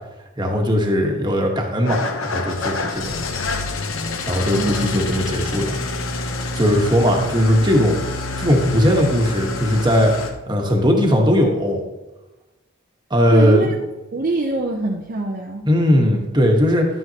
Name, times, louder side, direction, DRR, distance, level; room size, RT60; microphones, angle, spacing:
voice 1, 0.4-3.1 4.3-5.8 6.5-7.9 8.4-10.1 10.5-11.8 13.1-13.7 15.6-16.9, equal, 20° right, 1 dB, 1.3 m, -18 dB
Engine starting / Idling, 1.9-10.3, left 3 dB, 70° left, 0.9 m, -27 dB
voice 2, 4.5-5.0 13.3-13.7 14.1-15.6, right 2 dB, 40° right, 0 dB, 0.6 m, -24 dB
11.5 x 9.1 x 2.9 m, 1.1 s
head